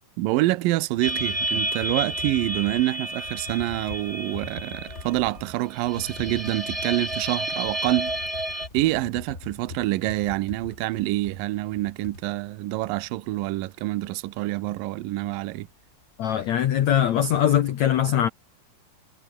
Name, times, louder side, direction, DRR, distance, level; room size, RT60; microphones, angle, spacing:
voice 1, 0.2-8.1 8.7-15.7, right 17 dB, 75° right, 2.1 m, -26 dB
sound 1, 1.0-13.5 13.8-13.9 14.1-15.9 16.2-16.3 16.6-17.5, left 4 dB, 35° left, 1.0 m, -43 dB
sound 2, 1.0-8.7, right 1 dB, 10° right, 3.0 m, -31 dB
voice 2, 16.2-18.3, left 10 dB, 90° left, 1.5 m, -21 dB
omnidirectional pair, 5.1 m